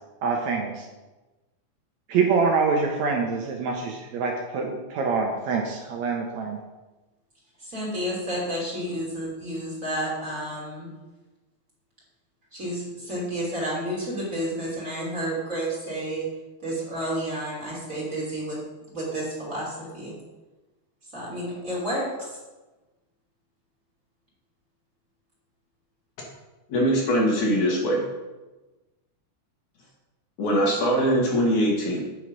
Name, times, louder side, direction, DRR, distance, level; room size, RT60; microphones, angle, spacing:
voice 1, 0.2-0.9 2.1-6.6, right 4 dB, 70° right, 2 dB, 2.0 m, -25 dB
voice 2, 7.6-10.9 12.5-16.3 16.6-18.6 18.9-20.1 21.1-22.3, right 1 dB, 25° right, -6 dB, 3.1 m, -30 dB
voice 3, 26.7-28.0 30.4-32.0, equal, 65° left, -3 dB, 3.2 m, -22 dB
8.4 x 6.3 x 5.3 m, 1.1 s
omnidirectional pair, 3.6 m